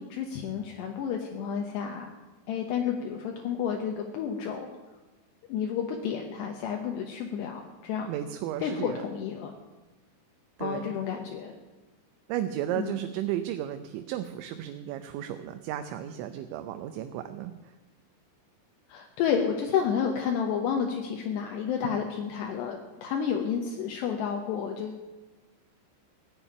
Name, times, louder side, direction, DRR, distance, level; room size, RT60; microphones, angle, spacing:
voice 1, 0.0-2.1 2.5-4.7 5.5-8.1 8.6-9.5 10.6-11.5 12.8-13.0 18.9-25.0, left 7 dB, 75° left, 2 dB, 3.0 m, -30 dB
voice 2, 8.1-9.0 10.6-10.9 12.3-17.5, right 11 dB, 85° right, 7 dB, 3.0 m, -34 dB
16.5 x 7.1 x 10.0 m, 1.1 s
omnidirectional pair, 5.3 m